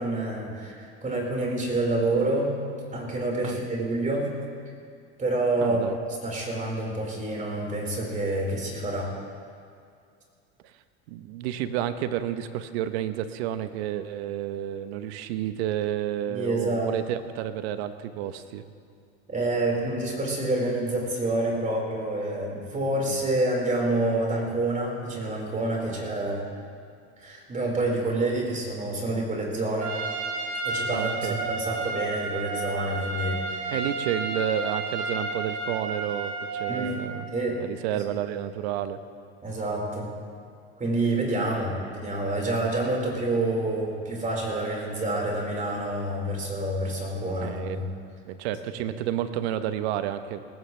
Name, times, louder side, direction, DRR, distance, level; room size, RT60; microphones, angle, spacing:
voice 1, 0.0-2.6 2.9-4.3 5.2-9.1 16.3-16.9 19.3-26.4 27.2-30.0 30.6-33.7 36.7-37.6 37.9-38.0 39.4-40.1 40.8-47.9 48.7-48.9, right 2 dB, 25° right, -2 dB, 4.6 m, -28 dB
voice 2, 5.6-6.0 11.1-18.6 23.1-23.3 25.9-26.1 30.9-31.3 33.7-37.3 37.6-39.0 47.4-47.8 48.2-50.4, right 11 dB, 75° right, 11 dB, 1.0 m, -30 dB
Trumpet, 29.8-37.1, right 3 dB, 45° right, 2.3 m, -31 dB
19.0 x 16.5 x 3.3 m, 2.3 s
hypercardioid pair, 95°, 32 cm